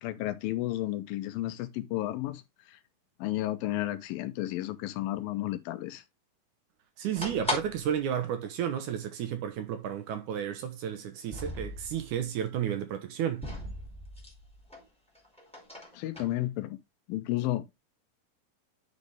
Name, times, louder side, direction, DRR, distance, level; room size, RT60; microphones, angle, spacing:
voice 1, 0.0-2.4 2.7-2.8 3.2-6.0 15.9-16.8 17.1-17.7, left 15 dB, 85° left, 2.5 m, -32 dB
voice 2, 7.0-13.4, right 9 dB, 70° right, 2.1 m, -32 dB
sound 1, 7.1-8.0 8.4-8.5 8.7-8.8 9.6-9.8 11.2-12.2 13.4-14.8 15.1-16.3, left 1 dB, ahead, 1.5 m, -38 dB
9.5 x 4.2 x 3.3 m
omnidirectional pair, 4.1 m